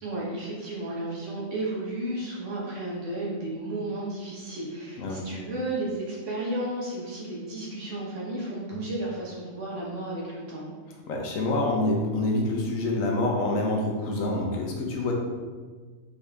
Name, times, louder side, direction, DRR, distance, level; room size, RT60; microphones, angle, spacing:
voice 1, 0.0-10.7, right 1 dB, 70° right, -5 dB, 1.4 m, -33 dB
voice 2, 11.1-15.1, left 2 dB, 85° left, 0 dB, 1.2 m, -26 dB
4.1 x 3.6 x 3.3 m, 1.5 s
omnidirectional pair, 1.3 m